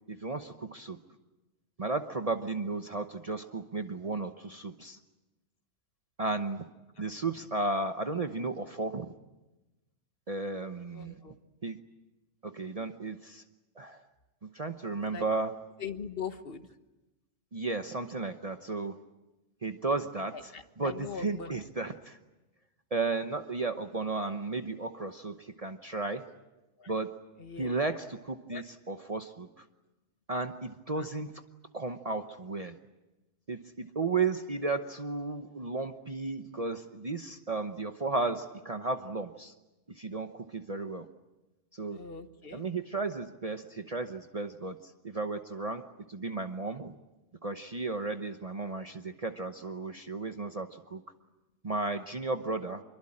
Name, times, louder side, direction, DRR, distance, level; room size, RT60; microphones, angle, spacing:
voice 1, 0.1-1.0 1.8-5.0 6.2-6.6 7.0-9.1 10.3-11.2 11.6-11.8 12.4-13.4 13.8-14.0 14.4-15.6 17.5-19.0 19.6-22.2 22.9-26.3 26.9-27.1 27.6-29.6 30.3-31.3 31.7-32.8 33.5-39.5 39.9-41.1 41.7-42.0 42.5-45.8 46.1-46.9 47.4-51.0 51.6-52.8, right 3 dB, 35° right, 7 dB, 1.0 m, -34 dB
voice 2, 10.9-11.4 15.1-15.2 15.8-16.6 20.3-21.6 26.8-26.9 27.4-27.8 28.5-28.6 31.0-31.1 41.9-42.6, left 6 dB, 55° left, 9 dB, 1.5 m, -41 dB
26.5 x 23.0 x 8.7 m, 1.1 s
omnidirectional pair, 1.2 m